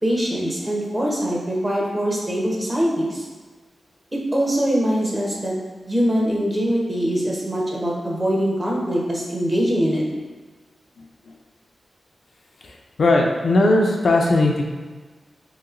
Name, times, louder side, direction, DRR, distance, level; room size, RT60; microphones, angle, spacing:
voice 1, 0.0-3.3 4.3-5.5 5.9-10.0, equal, 25° right, -3 dB, 0.7 m, -22 dB
voice 2, 13.0-14.6, left 2 dB, 70° left, 0 dB, 0.4 m, -18 dB
3.1 x 2.8 x 2.5 m, 1.4 s
cardioid pair, 60°, 0 cm